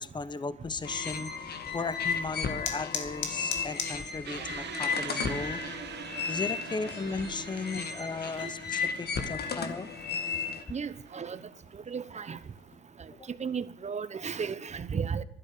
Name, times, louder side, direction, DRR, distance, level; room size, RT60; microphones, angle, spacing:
voice 1, 0.0-5.6 6.3-9.9 13.2-13.3, left 4 dB, 20° left, 1.0 m, -36 dB
sound 1, 0.8-10.6, left 6 dB, 55° left, 2.1 m, -34 dB
sound 2, 1.6-12.8, left 6 dB, 70° left, 2.4 m, -44 dB
sound 3, 4.2-11.3, right 9 dB, 60° right, 1.0 m, -44 dB
voice 2, 10.7-11.4 11.7-12.4 13.0-15.2, right 6 dB, 35° right, 1.0 m, -35 dB
12.0 x 11.5 x 8.8 m
cardioid pair, 90°, 20 cm